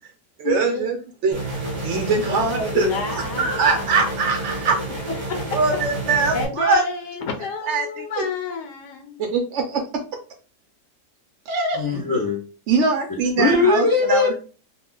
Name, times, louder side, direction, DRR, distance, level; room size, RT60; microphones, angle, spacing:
voice 1, 0.4-1.4 1.8-4.8 5.5-6.8 7.6-8.2 9.2-9.8 11.5-11.8 12.7-14.3, right 4 dB, 70° right, 3 dB, 0.7 m, -22 dB
sound 1, 1.3-6.4, right 2 dB, 30° right, 0.6 m, -30 dB
voice 2, 2.3-3.9 5.3-5.6 6.3-9.2, left 3 dB, 85° left, 5 dB, 1.2 m, -29 dB
voice 3, 11.8-12.4 13.4-14.4, left 3 dB, 30° left, -2 dB, 0.4 m, -20 dB
3.0 x 2.2 x 3.7 m, 0.36 s
omnidirectional pair, 1.7 m